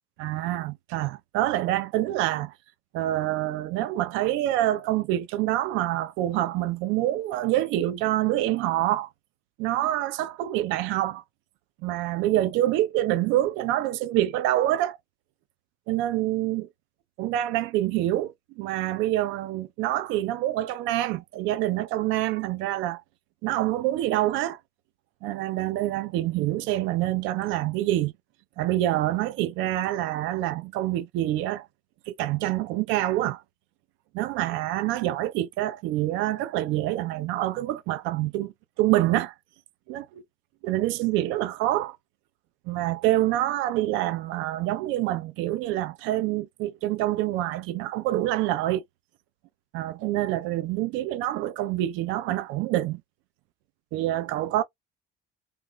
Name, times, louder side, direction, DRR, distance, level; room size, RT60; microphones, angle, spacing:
voice 1, 0.2-2.5 2.9-9.1 9.6-11.2 11.8-15.0 15.9-16.7 17.2-23.0 23.4-24.6 25.2-28.1 28.6-31.7 32.1-33.4 34.1-38.5 38.8-39.3 39.9-40.2 40.6-42.0 42.7-48.8 49.7-53.0 53.9-54.6, right 14 dB, 90° right, 0.5 m, -26 dB
3.3 x 2.4 x 3.1 m
cardioid pair, 110°, 19 cm